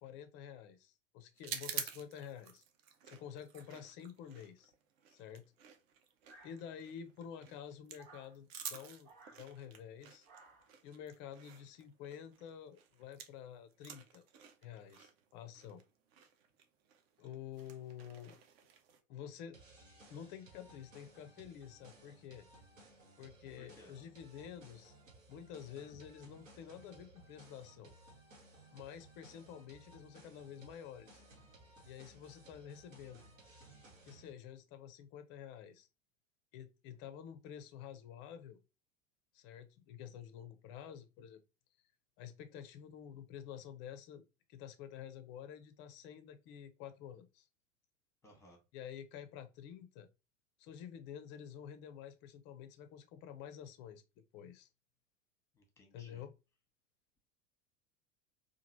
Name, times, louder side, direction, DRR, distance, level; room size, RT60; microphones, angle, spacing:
voice 1, 0.0-2.6 3.1-4.7 5.1-5.4 6.4-9.1 9.4-10.3 10.8-14.2 14.6-15.8 17.2-18.4 19.1-19.6 20.1-22.5 23.2-24.9 25.3-27.9 28.7-31.2 31.8-33.2 34.0-35.9 36.5-38.6 39.3-41.4 42.2-44.2 44.5-47.5 48.7-50.1 50.6-54.0 54.3-54.7 55.9-56.3, left 9 dB, 30° left, 0.4 m, -50 dB
sound 1, 1.4-13.5 13.7-19.0, right 8 dB, 50° right, 0.6 m, -49 dB
sound 2, 6.3-7.0 7.9-8.4 9.0-9.4 10.2-10.8, right 3 dB, 30° right, 1.0 m, -59 dB
sound 3, 19.5-34.3, right 2 dB, 75° right, 1.0 m, -60 dB
voice 2, 23.6-23.9 48.2-48.6 55.5-56.2, left 1 dB, 5° left, 0.8 m, -61 dB
2.9 x 2.4 x 2.5 m
figure-of-eight pair, 80°, 39 cm